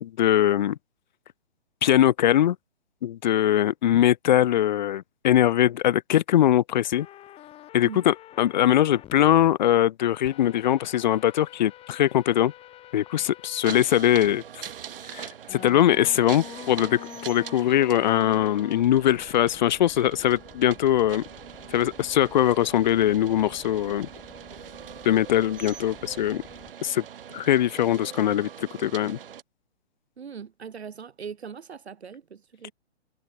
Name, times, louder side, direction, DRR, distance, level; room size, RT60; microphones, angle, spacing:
voice 1, 0.0-0.8 1.8-2.6 3.0-7.1 7.7-12.5 12.9-14.4 15.1-21.2 21.7-24.1 25.0-26.4 26.8-27.0 27.3-29.2, left 11 dB, 45° left, 0.8 m, -22 dB
sound 1, 6.9-9.5 10.2-13.7 14.2-14.3 15.5-26.7, left 14 dB, 20° left, 2.8 m, -47 dB
sound 2, 13.6-29.4, right 9 dB, 60° right, 3.7 m, -42 dB
voice 2, 30.2-32.7, right 6 dB, 80° right, 1.6 m, -40 dB
hypercardioid pair, 140°, 32 cm